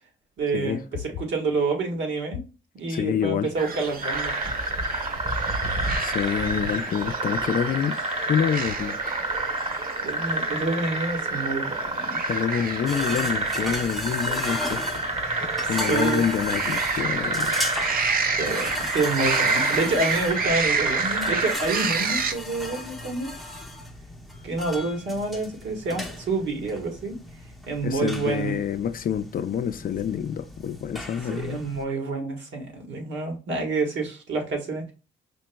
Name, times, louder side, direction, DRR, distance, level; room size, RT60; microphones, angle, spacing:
voice 1, 0.4-2.4 2.7-4.3 10.0-12.2 15.7-16.2 18.4-23.3 24.4-27.1 27.7-28.5 31.3-34.9, right 3 dB, 70° right, 1.5 m, -28 dB
voice 2, 2.9-3.5 5.4-5.5 6.0-8.0 8.3-9.0 12.3-15.1 15.7-17.7 27.8-31.6, left 8 dB, 45° left, 0.4 m, -27 dB
sound 1, 3.6-22.3, right 5 dB, 45° right, 0.5 m, -31 dB
sound 2, 4.0-21.5, right 2 dB, 30° right, 1.0 m, -29 dB
sound 3, 12.9-31.8, left 1 dB, ahead, 0.7 m, -36 dB
5.1 x 2.9 x 2.2 m
cardioid pair, 90°, 20 cm